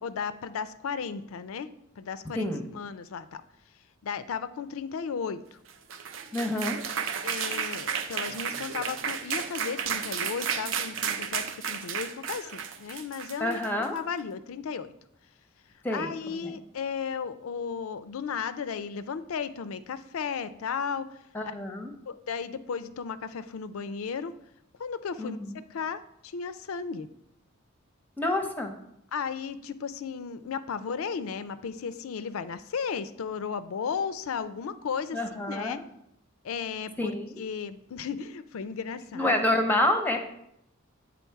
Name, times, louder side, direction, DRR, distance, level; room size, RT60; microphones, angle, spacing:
voice 1, 0.0-3.4 4.0-5.6 7.2-14.9 15.9-21.2 22.1-24.3 24.8-27.1 29.1-35.2 35.5-35.8 36.4-39.4, left 6 dB, 85° left, 13 dB, 0.4 m, -35 dB
voice 2, 2.3-2.7 6.3-6.8 13.4-14.0 15.8-16.6 21.3-21.9 25.2-25.6 28.2-28.7 35.1-35.8 37.0-37.4 39.1-40.2, left 1 dB, 10° left, 4 dB, 0.6 m, -28 dB
sound 1, 5.7-14.0, right 7 dB, 65° right, 0.5 m, -33 dB
8.4 x 3.7 x 4.6 m, 0.77 s
head